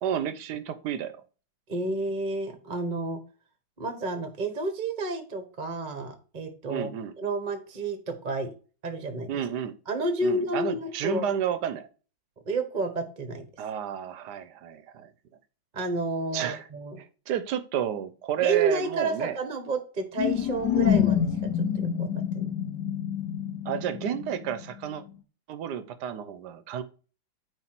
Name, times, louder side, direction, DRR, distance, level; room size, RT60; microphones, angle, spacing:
voice 1, 0.0-1.1 6.6-7.1 9.3-9.8 10.2-11.9 13.6-15.1 16.3-16.6 17.0-19.4 23.6-25.0 25.5-26.8, right 9 dB, 65° right, 12 dB, 1.2 m, -31 dB
voice 2, 1.7-3.2 3.8-6.9 7.2-8.5 8.8-9.4 9.9-11.3 12.5-13.5 15.7-17.0 18.4-22.1 22.3-22.5, right 3 dB, 30° right, 7 dB, 1.0 m, -30 dB
sound 1, 20.2-24.7, left 9 dB, 60° left, 1.3 m, -27 dB
9.3 x 3.2 x 5.9 m, 0.36 s
omnidirectional pair, 2.3 m